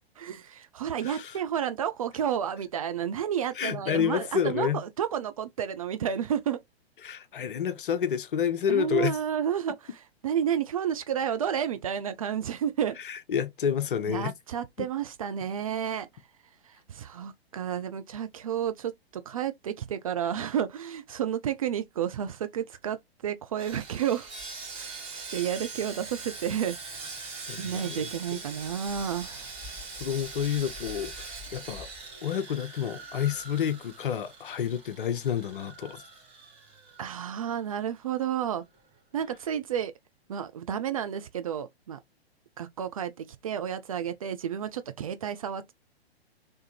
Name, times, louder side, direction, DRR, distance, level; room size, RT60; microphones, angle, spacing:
voice 1, 0.2-6.6 8.7-13.0 14.0-16.1 16.9-18.9 19.3-24.3 24.7-26.8 27.6-29.4 37.0-38.6 39.1-39.9 40.3-42.0 42.6-45.7, right 9 dB, 35° right, 0.4 m, -31 dB
voice 2, 1.0-1.4 3.6-4.8 7.0-9.2 13.0-14.3 14.8-14.9 27.5-28.4 30.0-31.9 32.2-36.0, left 8 dB, 55° left, 0.7 m, -29 dB
Sawing, 23.6-37.8 38.1-38.3 38.7-38.9, right 3 dB, 20° right, 1.4 m, -42 dB
3.4 x 3.1 x 2.8 m
figure-of-eight pair, 115°, 32 cm